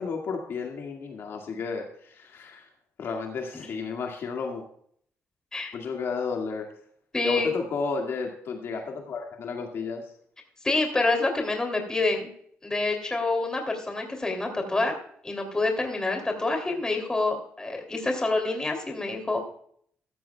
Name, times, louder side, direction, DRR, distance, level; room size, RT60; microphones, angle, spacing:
voice 1, 0.0-2.7 3.0-4.6 5.7-6.7 7.2-10.1, left 5 dB, 55° left, 2 dB, 1.9 m, -33 dB
voice 2, 7.1-7.5 10.6-12.3 12.6-14.9 15.2-19.4, left 2 dB, 15° left, 3 dB, 2.9 m, -27 dB
15.5 x 13.0 x 2.3 m, 0.62 s
cardioid pair, 135°, 5 cm